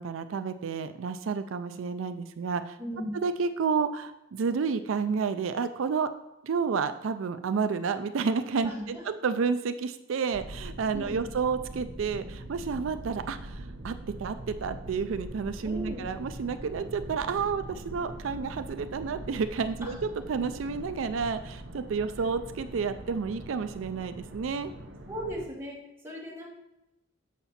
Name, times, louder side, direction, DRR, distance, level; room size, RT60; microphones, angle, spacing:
voice 1, 0.0-2.8 3.1-6.1 6.4-24.7, right 5 dB, 90° right, 10 dB, 0.4 m, -30 dB
voice 2, 2.8-3.1 8.6-9.0 10.9-11.2 15.6-16.1 19.8-19.9 25.1-26.5, equal, 15° right, -5 dB, 2.2 m, -37 dB
sound 1, 10.3-25.5, right 1 dB, 65° right, 0.8 m, -42 dB
7.3 x 5.8 x 4.2 m, 0.90 s
head